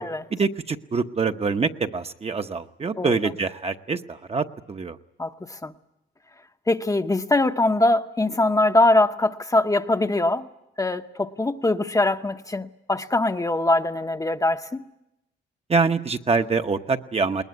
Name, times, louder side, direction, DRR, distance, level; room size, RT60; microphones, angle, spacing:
voice 1, 0.3-5.0 15.7-17.4, right 4 dB, 30° right, 7 dB, 0.9 m, -25 dB
voice 2, 5.2-5.7 6.7-10.5 10.8-14.8, left 2 dB, 15° left, 7 dB, 0.9 m, -22 dB
20.5 x 20.0 x 9.5 m, 0.89 s
cardioid pair, 90°, 20 cm